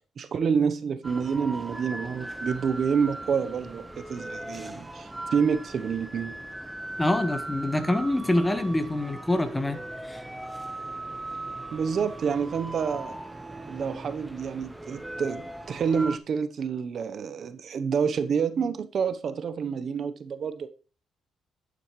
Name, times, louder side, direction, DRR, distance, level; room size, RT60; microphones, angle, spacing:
voice 1, 0.2-6.3 11.7-13.2 13.7-20.7, right 6 dB, 55° right, 0.9 m, -28 dB
sound 1, 1.0-16.2, right 1 dB, 10° right, 0.9 m, -39 dB
voice 2, 7.0-10.2, left 1 dB, 10° left, 1.4 m, -26 dB
10.0 x 9.1 x 3.2 m
cardioid pair, 90°, 0 cm